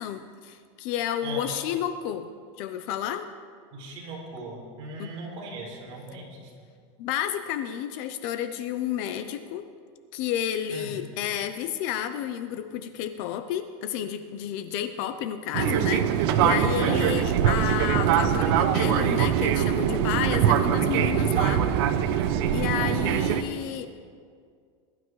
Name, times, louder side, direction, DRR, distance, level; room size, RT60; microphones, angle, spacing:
voice 1, 0.0-2.3 2.6-3.3 5.0-5.1 7.0-9.7 10.1-16.1 16.4-21.6 22.5-24.0, left 10 dB, 45° left, 10 dB, 0.6 m, -31 dB
voice 2, 3.7-6.5 10.7-11.0 16.2-16.5 16.8-17.0, right 2 dB, 35° right, -4 dB, 4.3 m, -38 dB
Fixed-wing aircraft airplane, 15.5-23.4, right 9 dB, 55° right, 0.8 m, -23 dB
21.5 x 12.0 x 3.2 m, 2.1 s
supercardioid pair, 170°, 16 cm